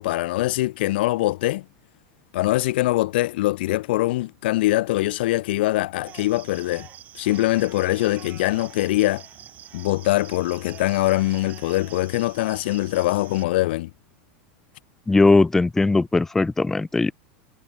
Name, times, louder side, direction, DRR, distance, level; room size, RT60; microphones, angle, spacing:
voice 1, 0.0-1.6 2.3-6.9 7.1-9.2 9.7-13.9, left 17 dB, 75° left, 0.6 m, -23 dB
sound 1, 6.0-13.4, right 11 dB, 30° right, 2.2 m, -45 dB
voice 2, 15.1-17.1, left 3 dB, 5° left, 0.5 m, -19 dB
supercardioid pair, 155°, 5 cm